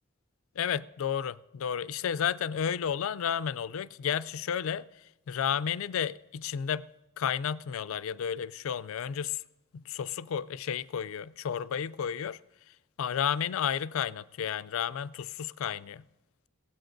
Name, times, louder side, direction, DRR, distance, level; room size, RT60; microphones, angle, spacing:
voice 1, 0.6-6.9 7.2-9.4 9.7-12.4 13.0-16.0, left 8 dB, 75° left, 0.4 m, -32 dB
22.0 x 16.5 x 2.6 m
head